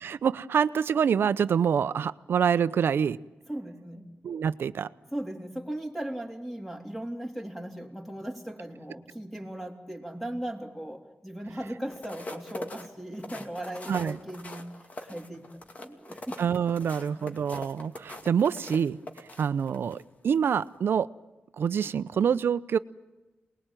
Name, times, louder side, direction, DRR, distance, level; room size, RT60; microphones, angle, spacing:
voice 1, 0.0-3.2 4.2-4.9 13.9-14.2 16.4-19.0 19.4-21.1 21.6-22.8, right 7 dB, 75° right, 14 dB, 0.8 m, -26 dB
voice 2, 3.5-4.1 5.1-14.6 15.0-16.4 17.2-17.4, right 1 dB, 5° left, 3 dB, 3.4 m, -38 dB
sound 1, 11.8-20.0 20.5-20.7, left 2 dB, 40° left, 2.5 m, -42 dB
28.5 x 20.5 x 9.2 m, 1.1 s
wide cardioid pair, 120°, 4 cm